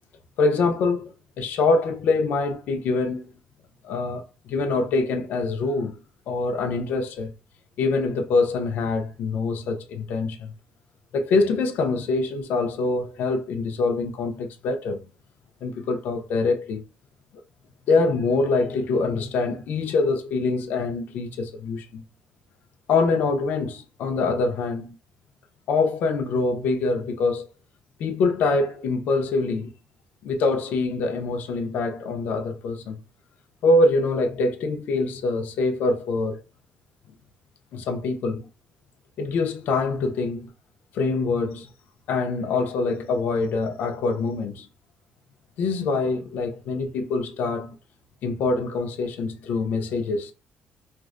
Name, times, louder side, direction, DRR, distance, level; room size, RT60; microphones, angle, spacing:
voice 1, 0.4-3.3 3.8-6.0 6.3-7.3 7.8-10.5 11.1-15.1 15.6-16.8 17.9-22.0 22.9-25.0 25.7-27.5 28.0-29.7 30.2-33.0 33.6-36.4 37.7-38.5 39.2-40.5 40.9-41.7 42.1-44.7 45.6-47.8 48.2-50.3, left 3 dB, 70° left, 0.4 m, -24 dB
2.4 x 2.2 x 2.4 m
cardioid pair, 115°, 3 cm